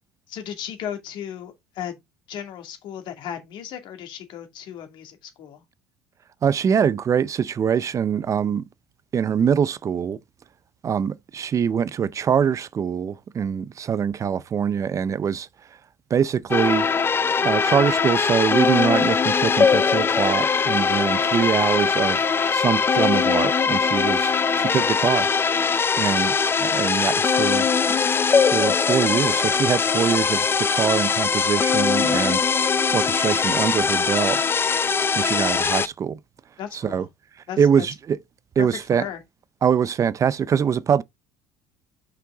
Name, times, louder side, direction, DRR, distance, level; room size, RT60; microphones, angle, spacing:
voice 1, 0.3-2.0 2.3-5.6 36.6-37.1 37.5-37.8 38.6-39.2, left 9 dB, 65° left, 2.3 m, -35 dB
voice 2, 6.4-8.6 9.1-10.2 10.8-15.5 16.1-16.9 17.4-25.3 25.5-28.0 28.5-34.5 35.2-36.2 36.7-37.1 37.6-38.2 38.6-39.1 39.6-41.0, right 7 dB, 35° right, 0.5 m, -23 dB
sound 1, 16.5-35.9, left 5 dB, 25° left, 0.5 m, -21 dB
6.0 x 5.7 x 3.8 m
supercardioid pair, 90°, 9 cm